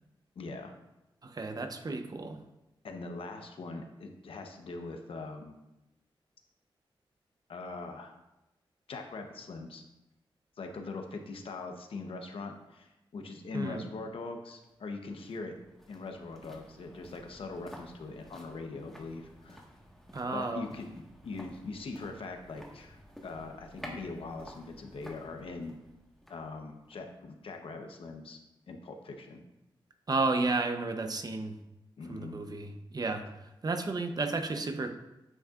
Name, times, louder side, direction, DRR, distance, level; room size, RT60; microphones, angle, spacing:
voice 1, 0.4-0.7 2.8-5.6 7.5-8.2 8.9-9.8 10.6-15.5 15.9-19.6 20.3-25.8 26.3-28.4 28.7-29.4 32.0-32.4, left 3 dB, 85° left, 4 dB, 0.9 m, -41 dB
voice 2, 1.2-2.4 13.5-13.8 20.1-20.7 30.1-31.6 32.1-34.9, right 3 dB, 45° right, 6 dB, 0.8 m, -32 dB
sound 1, 14.6-27.8 28.1-28.2, equal, 5° left, 1.5 m, -52 dB
9.3 x 6.3 x 2.5 m, 0.95 s
wide cardioid pair, 85°, 9 cm